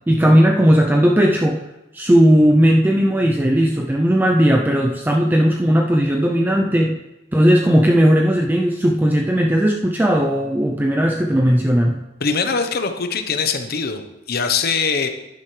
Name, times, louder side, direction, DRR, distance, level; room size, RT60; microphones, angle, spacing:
voice 1, 0.0-1.6 1.9-7.0 7.3-12.0, equal, 10° right, 1 dB, 0.5 m, -16 dB
voice 2, 12.2-14.0 14.3-15.1, left 5 dB, 50° left, 7 dB, 0.8 m, -22 dB
10.5 x 10.5 x 3.2 m, 0.95 s
head